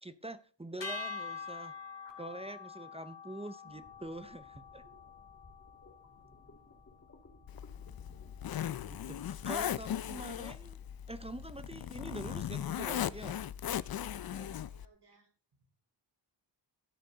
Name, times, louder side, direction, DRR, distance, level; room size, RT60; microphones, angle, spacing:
voice 1, 0.0-1.7 2.2-4.8 8.8-10.8 11.1-13.5, right 1 dB, 15° right, 0.6 m, -45 dB
sound 1, 0.8-7.1, left 5 dB, 80° left, 2.2 m, -46 dB
sound 2, 3.6-13.1, left 2 dB, 35° left, 2.3 m, -59 dB
Zipper (clothing), 7.5-14.9, left 10 dB, 55° left, 0.5 m, -38 dB
voice 2, 14.3-15.3, right 3 dB, 65° right, 4.0 m, -60 dB
12.0 x 8.9 x 3.9 m
wide cardioid pair, 140°, 43 cm